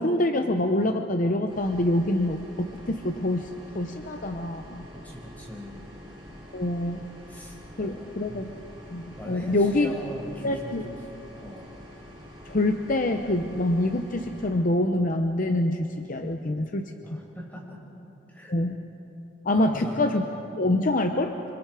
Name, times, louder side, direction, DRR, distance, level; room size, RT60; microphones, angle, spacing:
voice 1, 0.0-3.5 3.7-4.9 6.5-7.0 7.8-8.5 8.9-9.9 10.4-10.9 12.5-16.9 18.5-18.8 19.4-20.2 20.6-21.4, left 1 dB, 45° left, 5 dB, 0.8 m, -25 dB
sound 1, 1.5-14.5, equal, 25° right, 6.7 m, -46 dB
voice 2, 4.9-5.9 7.3-8.4 9.2-11.0 11.4-11.8 17.0-17.9 18.3-18.5 19.5-20.1, equal, 10° left, -3 dB, 5.2 m, -41 dB
27.5 x 26.0 x 4.9 m, 2.9 s
head